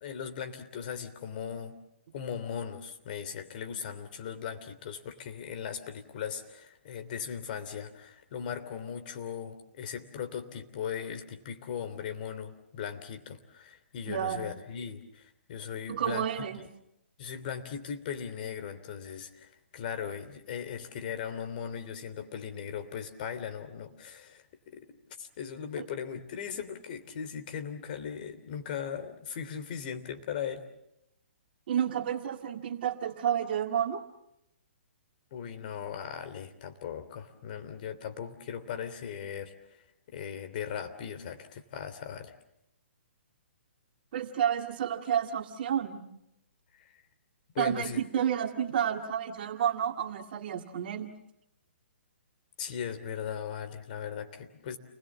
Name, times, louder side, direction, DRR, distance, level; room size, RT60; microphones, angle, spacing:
voice 1, 0.0-1.7 2.1-16.3 17.2-24.9 25.2-30.6 35.3-39.5 40.1-42.3 46.8-46.9 47.5-48.0 52.6-54.8, left 8 dB, 45° left, 7 dB, 3.1 m, -38 dB
voice 2, 14.1-14.5 15.9-16.6 25.8-25.9 31.7-34.0 44.1-46.0 47.6-51.1, right 9 dB, 50° right, 5 dB, 2.1 m, -30 dB
29.5 x 21.0 x 7.4 m, 0.83 s
hypercardioid pair, 150°, 7 cm